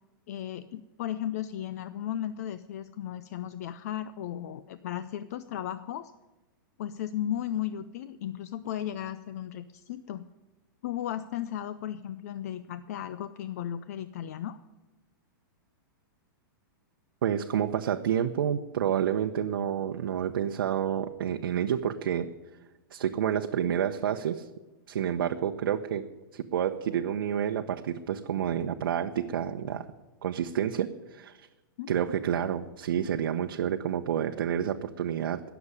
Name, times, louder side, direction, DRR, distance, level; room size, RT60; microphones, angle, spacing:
voice 1, 0.3-6.1 6.8-10.3 10.8-14.6 31.8-31.9, left 11 dB, 45° left, 13 dB, 0.5 m, -35 dB
voice 2, 17.2-22.3 22.9-24.5 24.9-29.9 30.2-31.5 31.9-35.4, right 9 dB, 75° right, 5 dB, 0.8 m, -29 dB
18.0 x 7.0 x 9.8 m, 1.1 s
supercardioid pair, 170°, 12 cm